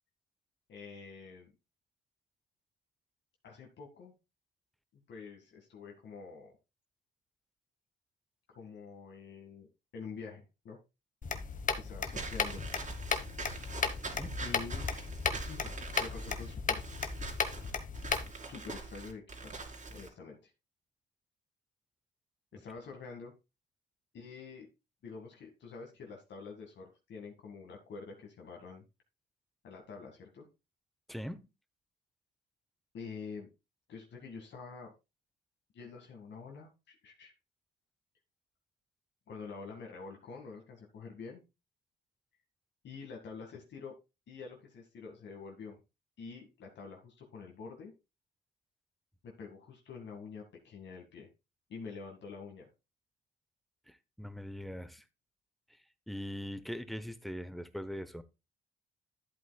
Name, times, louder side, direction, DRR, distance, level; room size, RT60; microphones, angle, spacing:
voice 1, 0.7-1.5 3.4-4.1 5.1-6.6 8.5-9.7 9.9-10.8 11.8-12.6 14.4-14.9 15.3-16.8 18.5-19.6 19.9-20.5 22.5-23.3 24.1-24.7 25.0-28.8 29.6-30.5 32.9-33.5 33.9-34.9 35.7-37.3 39.3-41.4 42.8-43.9 44.3-45.8 46.2-47.9 49.2-51.3 51.7-52.6, left 5 dB, 65° left, 2.1 m, -47 dB
sound 1, 11.2-18.3, left 5 dB, 40° left, 1.3 m, -35 dB
Walk footsteps / Squeak, 12.1-20.1, right 3 dB, 40° right, 2.6 m, -44 dB
voice 2, 31.1-31.5 53.9-55.0 56.1-58.2, equal, ahead, 0.9 m, -41 dB
11.5 x 8.3 x 2.3 m
cardioid pair, 90°, 20 cm